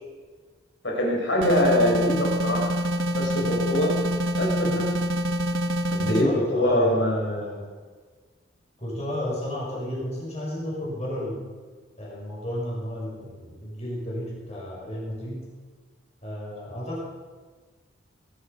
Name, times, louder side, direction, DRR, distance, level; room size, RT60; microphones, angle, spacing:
voice 1, 0.8-2.7 3.1-4.0 4.3-4.9 5.9-7.4, left 1 dB, 60° left, -1 dB, 4.6 m, -23 dB
sound 1, 1.4-6.3, right 1 dB, 75° right, 1.1 m, -26 dB
voice 2, 6.0-7.6 8.8-11.4 12.0-15.5 16.2-17.0, left 1 dB, 30° left, -5 dB, 5.6 m, -32 dB
20.0 x 12.0 x 5.6 m, 1.5 s
head